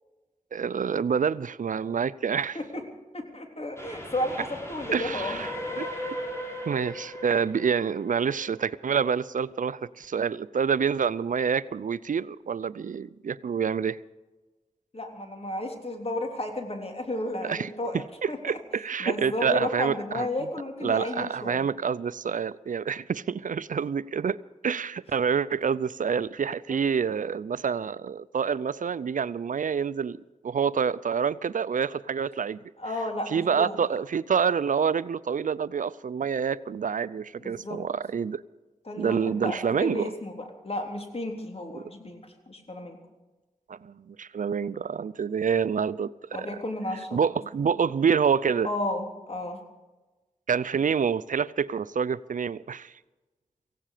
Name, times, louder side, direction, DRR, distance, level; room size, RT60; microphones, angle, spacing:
voice 1, 0.5-2.6 4.9-5.5 5.8-6.2 6.7-14.0 17.4-20.3 20.8-30.2 30.4-32.6 33.3-38.4 39.0-40.1 41.7-41.8 43.7-46.5 47.1-48.7 50.5-52.9, right 6 dB, 70° right, 0.5 m, -27 dB
voice 2, 3.1-5.4 14.9-18.0 18.3-18.4 19.0-21.7 26.7-26.8 32.8-33.8 37.4-37.8 38.8-43.0 46.3-47.2 48.6-49.6, left 1 dB, 45° left, 3.5 m, -33 dB
Train, 3.8-9.0, left 1 dB, 20° left, 5.7 m, -37 dB
18.0 x 16.0 x 5.0 m
cardioid pair, 45°, 14 cm